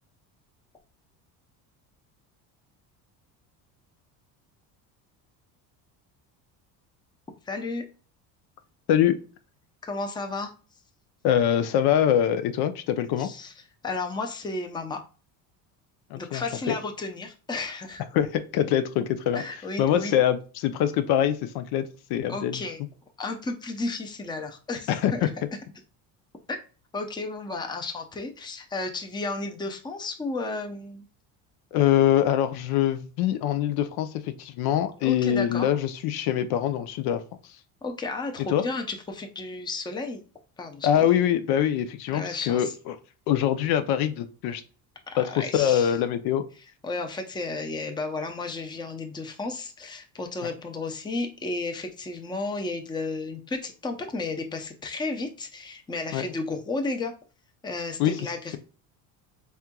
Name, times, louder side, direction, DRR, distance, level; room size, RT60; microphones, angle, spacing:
voice 1, 7.4-7.8 9.8-10.5 13.2-13.5 13.8-15.0 16.2-18.0 19.3-20.1 22.3-22.8 23.2-25.3 26.5-26.6 26.9-31.1 35.0-35.7 37.8-40.2 40.6-41.1 42.1-42.7 45.1-46.0 46.8-57.1 57.6-58.6, left 3 dB, 10° left, 5 dB, 0.6 m, -33 dB
voice 2, 11.2-13.3 16.1-16.7 18.1-19.4 19.8-22.6 24.9-25.3 31.7-37.2 38.5-38.6 40.8-43.0 43.3-44.6 45.2-46.4 50.4-50.5 56.1-56.2 58.0-58.1, left 10 dB, 65° left, 10 dB, 0.6 m, -24 dB
4.4 x 3.5 x 2.2 m, 0.37 s
cardioid pair, 120°, 41 cm